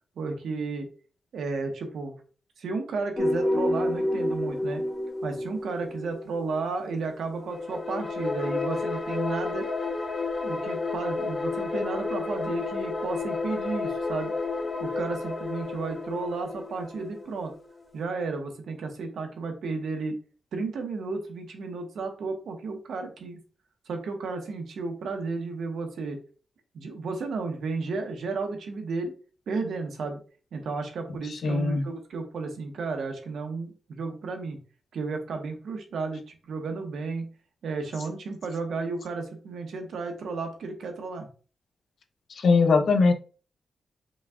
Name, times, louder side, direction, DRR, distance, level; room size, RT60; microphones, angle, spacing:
voice 1, 0.2-0.9 1.3-2.2 2.6-4.8 5.2-9.7 10.4-14.3 14.8-17.5 17.9-20.1 20.5-23.4 23.9-26.2 26.7-29.1 29.5-30.2 30.5-34.6 34.9-37.3 37.6-41.3, right 4 dB, 80° right, 5 dB, 1.0 m, -33 dB
sound 1, 3.2-6.8 7.3-18.0, left 2 dB, 25° left, 0.7 m, -31 dB
voice 2, 31.4-31.8 42.4-43.1, left 4 dB, 65° left, 5 dB, 0.7 m, -20 dB
5.3 x 2.4 x 3.6 m, 0.38 s
wide cardioid pair, 120°, 0 cm